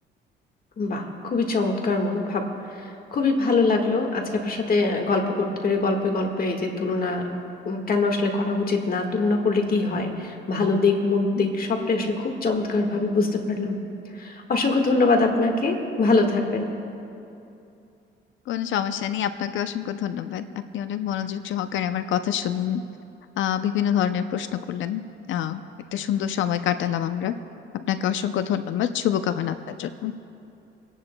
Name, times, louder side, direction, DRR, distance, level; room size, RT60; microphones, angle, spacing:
voice 1, 0.8-7.4 7.6-13.8 14.2-16.7, left 3 dB, 50° left, 3 dB, 1.6 m, -23 dB
voice 2, 18.5-20.4 20.7-22.8 23.4-25.0 25.3-25.6 25.9-27.3 27.7-30.1, left 10 dB, 75° left, 11 dB, 0.5 m, -26 dB
29.0 x 11.0 x 2.2 m, 2.7 s
cardioid pair, 90°, 20 cm